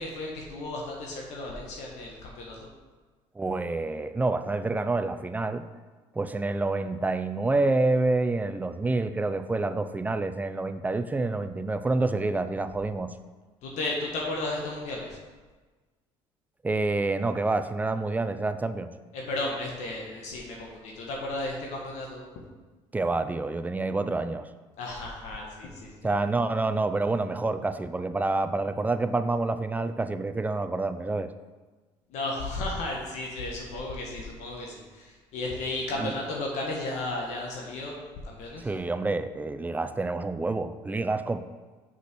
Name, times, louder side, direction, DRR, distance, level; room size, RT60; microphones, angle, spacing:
voice 1, 0.0-2.6 13.6-15.2 19.1-22.2 24.8-26.2 32.1-38.7, left 2 dB, 70° left, -2 dB, 1.5 m, -34 dB
voice 2, 3.4-5.6 6.2-13.1 16.6-18.9 22.9-24.5 26.0-31.3 36.0-36.1 38.6-41.4, right 3 dB, 15° right, 10 dB, 0.5 m, -28 dB
6.1 x 5.8 x 6.2 m, 1.3 s
supercardioid pair, 100°, 12 cm